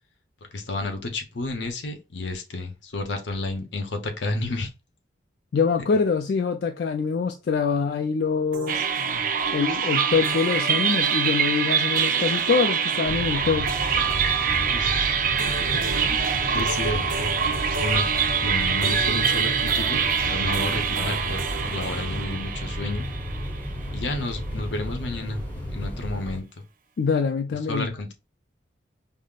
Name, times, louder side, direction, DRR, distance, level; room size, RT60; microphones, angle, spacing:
voice 1, 0.5-4.7 8.9-9.2 14.7-15.1 15.5-16.2 16.5-17.3 17.8-18.1 18.4-23.1 23.9-25.4 25.7-26.5 27.7-28.1, left 2 dB, 80° left, 0.8 m, -31 dB
voice 2, 5.5-8.8 9.5-13.7 27.0-27.9, left 5 dB, 60° left, 0.3 m, -24 dB
sound 1, 8.5-22.2, right 1 dB, 90° right, 0.7 m, -37 dB
sound 2, 8.7-23.9, right 7 dB, 45° right, 0.4 m, -25 dB
sound 3, 13.0-26.4, equal, 10° left, 0.8 m, -33 dB
5.3 x 2.0 x 2.4 m
head